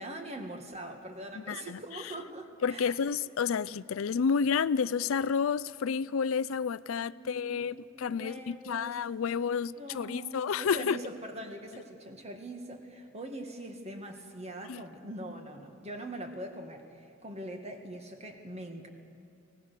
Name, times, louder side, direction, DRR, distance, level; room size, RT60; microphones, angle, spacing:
voice 1, 0.0-3.2 6.9-9.2 9.8-18.9, right 1 dB, 30° right, 5 dB, 1.9 m, -43 dB
voice 2, 1.3-1.8 2.6-11.0 14.7-14.8, left 6 dB, 70° left, 18 dB, 0.4 m, -30 dB
24.5 x 18.5 x 6.7 m, 2.7 s
head